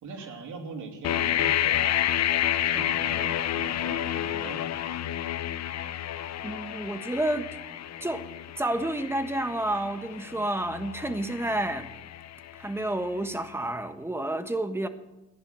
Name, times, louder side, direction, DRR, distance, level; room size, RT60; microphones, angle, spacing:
voice 1, 0.0-2.0 2.6-4.7, right 4 dB, 75° right, 3 dB, 3.0 m, -41 dB
sound 1, 1.0-12.8, left 11 dB, 60° left, 0.8 m, -30 dB
voice 2, 6.4-7.5 8.0-8.2 8.6-11.9 12.6-14.9, right 1 dB, 10° right, 9 dB, 1.3 m, -30 dB
15.0 x 10.5 x 6.7 m, 0.99 s
cardioid pair, 90°, 30 cm